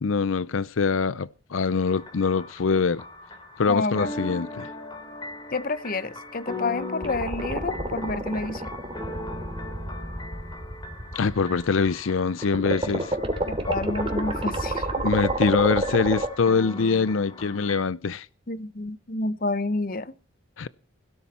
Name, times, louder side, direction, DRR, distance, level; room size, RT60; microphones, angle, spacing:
voice 1, 0.0-3.0 3.6-4.7 11.1-13.2 15.0-18.3 20.6-20.7, left 5 dB, 85° left, 0.6 m, -24 dB
sound 1, 1.8-17.8, left 2 dB, 20° left, 3.0 m, -39 dB
voice 2, 3.7-4.1 5.5-8.7 13.4-14.9 18.5-20.1, left 3 dB, 45° left, 0.9 m, -29 dB
sound 2, 7.0-12.0 12.4-16.3, right 1 dB, 30° right, 2.7 m, -29 dB
16.5 x 13.0 x 4.2 m
head